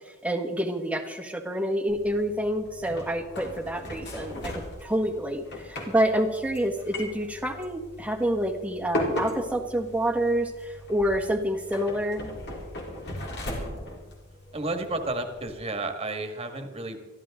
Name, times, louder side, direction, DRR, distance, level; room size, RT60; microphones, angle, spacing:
voice 1, 0.2-12.3, right 1 dB, 5° right, 4 dB, 1.5 m, -28 dB
sound 1, 1.9-15.5, left 1 dB, 55° left, 3.5 m, -38 dB
voice 2, 14.5-17.1, right 2 dB, 30° right, 6 dB, 1.8 m, -32 dB
22.5 x 14.0 x 3.8 m, 1.2 s
head